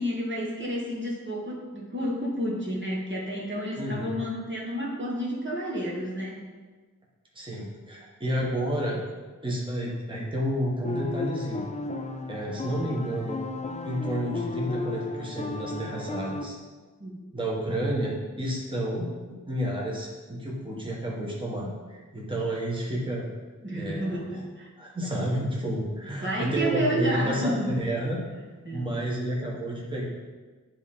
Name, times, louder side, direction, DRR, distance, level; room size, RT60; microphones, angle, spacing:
voice 1, 0.0-6.4 17.0-17.2 23.6-24.7 26.2-27.7 28.6-28.9, equal, 35° right, -4 dB, 1.4 m, -30 dB
voice 2, 3.8-4.2 7.3-9.0 9.4-11.6 12.3-13.4 13.8-16.6 17.3-23.3 23.7-24.2 24.8-28.2 28.7-30.1, right 1 dB, 15° right, -4 dB, 1.4 m, -30 dB
sound 1, 10.8-16.4, left 3 dB, 20° left, 0.4 m, -34 dB
9.9 x 3.8 x 4.3 m, 1.4 s
wide cardioid pair, 90°, 34 cm